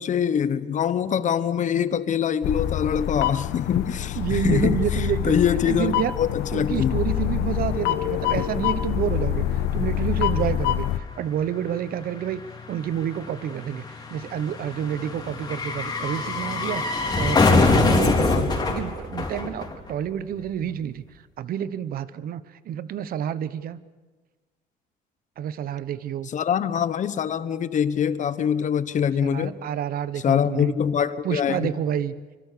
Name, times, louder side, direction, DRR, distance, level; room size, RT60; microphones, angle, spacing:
voice 1, 0.0-7.0 18.3-18.7 26.3-29.6 30.2-31.7, left 8 dB, 45° left, 1.2 m, -24 dB
sound 1, 2.4-11.0, left 12 dB, 85° left, 1.1 m, -26 dB
voice 2, 4.2-6.1 6.5-10.9 11.2-12.4 12.7-13.8 14.1-21.0 21.4-23.8 25.4-26.3 29.2-30.7 31.2-32.1, right 9 dB, 60° right, 1.0 m, -29 dB
sound 2, 9.4-9.5 9.7-20.1 20.4-20.5, left 3 dB, 25° left, 3.8 m, -25 dB
25.0 x 24.5 x 6.9 m
cardioid pair, 110°, 17 cm